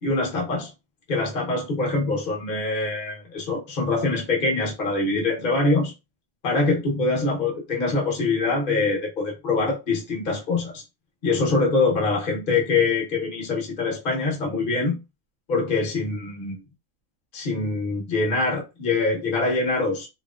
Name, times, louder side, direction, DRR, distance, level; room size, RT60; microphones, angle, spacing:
voice 1, 0.0-0.7 1.1-5.9 6.4-10.8 11.2-15.0 15.5-16.6 17.3-20.1, left 3 dB, 45° left, 0.9 m, -24 dB
2.9 x 2.4 x 2.3 m
omnidirectional pair, 1.3 m